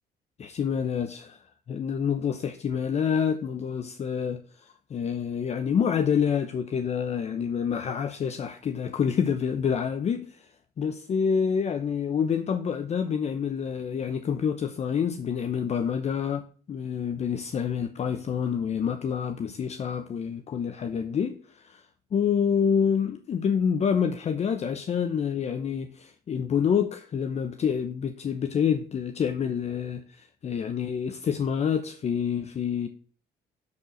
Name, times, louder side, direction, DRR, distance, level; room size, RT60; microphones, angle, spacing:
voice 1, 0.4-10.5 10.8-16.4 16.7-21.8 22.1-32.9, left 7 dB, 40° left, 0.8 m, -27 dB
10.5 x 4.8 x 6.5 m
cardioid pair, 110°, 17 cm